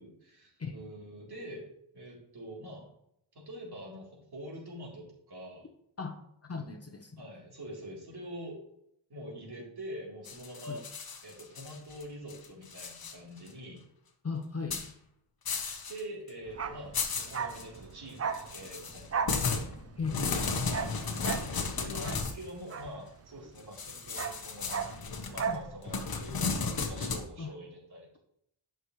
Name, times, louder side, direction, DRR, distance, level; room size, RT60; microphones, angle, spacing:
voice 1, 0.0-1.7 1.9-2.9 3.3-5.7 7.2-8.6 9.1-10.8 11.2-13.8 15.6-19.6 20.6-21.3 21.8-24.9 25.3-28.2, equal, 55° right, -4 dB, 3.7 m, -45 dB
voice 2, 6.0-7.2 10.7-10.8 14.2-14.8 20.0-20.4 25.4-25.6 27.4-27.5, left 4 dB, 30° left, 4 dB, 0.9 m, -37 dB
sound 1, 10.2-12.0 12.3-13.1 13.5-13.6 14.7-14.9 15.5-16.0 16.3-16.4 16.9-17.6 18.3-22.4 23.8-27.3, left 4 dB, 50° left, 1.2 m, -34 dB
Bark, 16.5-23.5 23.8-25.7 26.0-26.1, right 6 dB, 30° right, 0.6 m, -37 dB
12.0 x 6.3 x 3.2 m, 0.76 s
wide cardioid pair, 110°, 47 cm